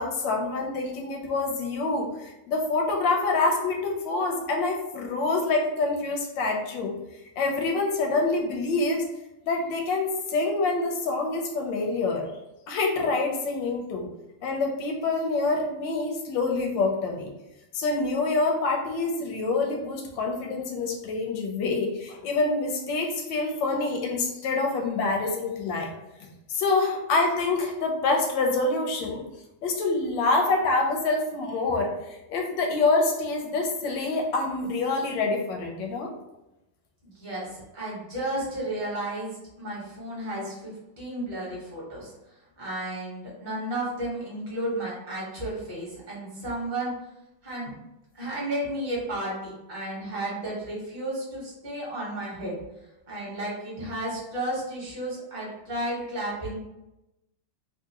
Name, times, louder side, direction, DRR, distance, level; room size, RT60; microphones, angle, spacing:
voice 1, 0.0-6.9 7.4-9.0 9.4-12.2 12.7-14.1 14.4-17.3 17.7-25.9 26.5-29.2 29.6-36.1, left 3 dB, 75° left, 2 dB, 1.2 m, -26 dB
voice 2, 37.0-42.1 42.6-46.9 47.4-47.7 48.1-52.6 53.1-56.6, right 1 dB, 25° right, -5 dB, 1.2 m, -33 dB
3.5 x 2.8 x 2.8 m, 0.93 s
omnidirectional pair, 2.3 m